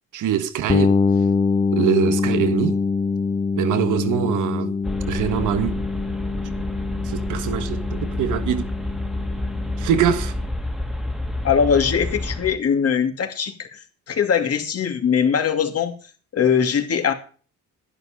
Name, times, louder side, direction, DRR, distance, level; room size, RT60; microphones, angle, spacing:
voice 1, 0.1-1.0 1.7-2.8 3.6-4.8 5.1-5.7 7.0-8.7 9.8-10.3, right 9 dB, 85° right, 1.5 m, -23 dB
sound 1, 0.7-10.4, left 4 dB, 20° left, 0.7 m, -24 dB
sound 2, 4.8-12.6, left 1 dB, ahead, 2.0 m, -29 dB
voice 2, 11.4-15.9 16.3-17.1, left 7 dB, 50° left, 2.6 m, -21 dB
11.0 x 11.0 x 5.2 m
cardioid pair, 90°, 30 cm